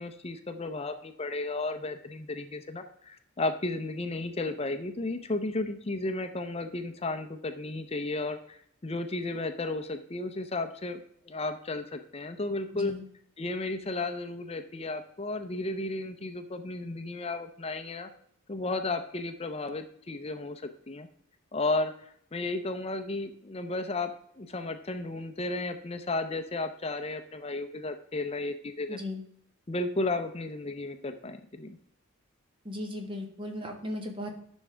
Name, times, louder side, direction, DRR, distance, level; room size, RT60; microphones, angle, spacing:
voice 1, 0.0-11.0 11.3-12.9 13.4-18.1 18.5-21.1 21.5-29.0 29.7-31.8, left 2 dB, 30° left, 8 dB, 0.6 m, -33 dB
voice 2, 12.7-13.0 28.9-29.2 32.6-34.3, left 1 dB, 25° right, 3 dB, 1.4 m, -36 dB
10.5 x 6.3 x 3.4 m, 0.67 s
head